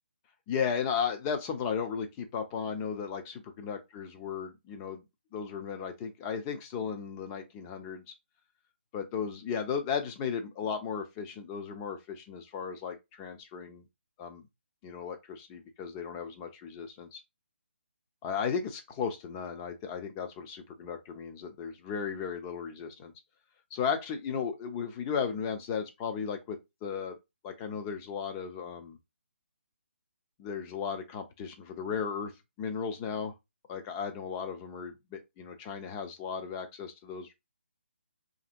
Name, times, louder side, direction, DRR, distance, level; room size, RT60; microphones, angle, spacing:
voice 1, 0.5-5.0 5.3-8.1 8.9-13.8 14.2-14.4 14.8-17.2 18.2-23.1 23.7-27.1 27.4-29.0 30.4-32.3 32.6-33.3 33.7-37.4, left 6 dB, 20° left, 0.4 m, -35 dB
2.7 x 2.6 x 2.5 m
figure-of-eight pair, 150°, 7 cm